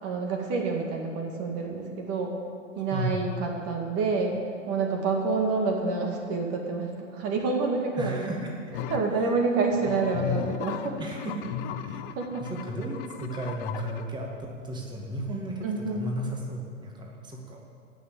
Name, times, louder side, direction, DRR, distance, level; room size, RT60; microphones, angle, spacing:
voice 1, 0.0-2.3 2.8-8.3 8.9-11.0 12.1-12.4 15.6-16.1, right 4 dB, 35° right, 1 dB, 2.1 m, -28 dB
voice 2, 8.0-8.6 11.0-12.0 12.4-14.3 14.6-17.6, right 1 dB, 10° right, -1 dB, 2.1 m, -34 dB
sound 1, 8.7-9.1 9.7-14.0, left 8 dB, 40° left, 0.9 m, -35 dB
17.5 x 6.6 x 8.6 m, 2.2 s
hypercardioid pair, 105°, 39 cm